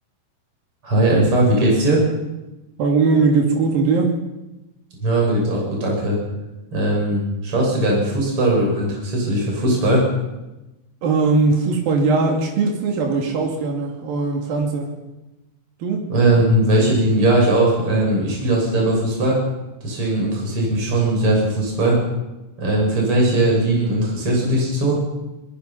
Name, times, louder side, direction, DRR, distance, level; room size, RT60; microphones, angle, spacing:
voice 1, 0.8-2.0 5.0-6.2 6.7-10.1 16.1-19.4 19.8-22.0 22.6-25.0, right 1 dB, 35° right, -2 dB, 7.5 m, -19 dB
voice 2, 2.8-4.1 11.0-14.9 15.8-16.1, right 4 dB, 75° right, 1 dB, 4.4 m, -19 dB
24.5 x 21.5 x 5.8 m, 1.0 s
omnidirectional pair, 4.2 m